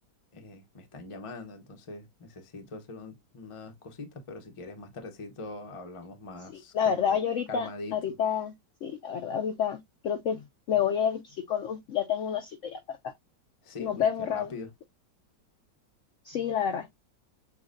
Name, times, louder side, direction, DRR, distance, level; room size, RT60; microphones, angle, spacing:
voice 1, 0.3-7.2 7.5-8.0 13.6-14.7, left 3 dB, 35° left, 0.5 m, -42 dB
voice 2, 6.7-8.5 8.8-13.1 13.8-14.5 16.2-16.9, left 8 dB, 80° left, 0.6 m, -29 dB
6.9 x 2.5 x 2.5 m
omnidirectional pair, 1.9 m